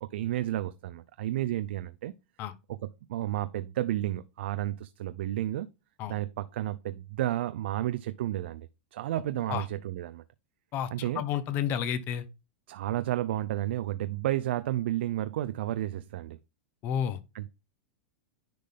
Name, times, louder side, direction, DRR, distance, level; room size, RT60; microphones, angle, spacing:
voice 1, 0.0-2.1 2.7-2.8 3.1-5.7 6.1-10.2 10.9-11.2 12.7-16.4 17.3-17.5, right 14 dB, 75° right, 0.5 m, -32 dB
voice 2, 11.1-12.2 16.8-17.2, left 9 dB, 35° left, 0.9 m, -30 dB
10.5 x 3.9 x 3.5 m
supercardioid pair, 150°, 6 cm